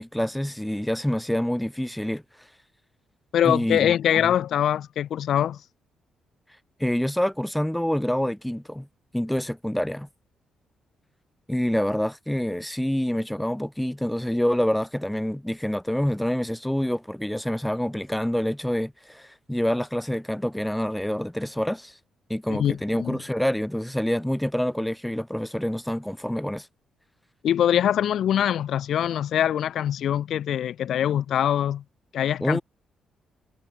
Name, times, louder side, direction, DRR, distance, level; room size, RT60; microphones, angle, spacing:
voice 1, 0.0-2.2 3.4-4.0 4.2-4.3 6.8-8.9 9.1-10.1 11.5-21.9 22.3-26.7 32.4-32.6, equal, 5° left, 4.4 m, -27 dB
voice 2, 3.3-5.6 22.5-23.2 27.4-31.8 32.1-32.6, left 10 dB, 65° left, 3.7 m, -23 dB
cardioid pair, 125°, 0 cm